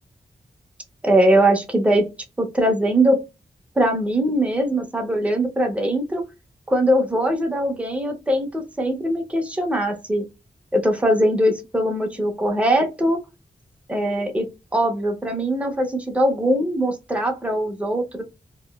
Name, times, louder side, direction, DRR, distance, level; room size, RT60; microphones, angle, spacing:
voice 1, 1.0-2.1 2.4-3.2 3.8-6.2 6.7-10.2 10.7-13.2 13.9-14.5 14.7-18.2, right 1 dB, 5° right, 0.5 m, -21 dB
2.8 x 2.4 x 2.2 m
wide cardioid pair, 130°, 17 cm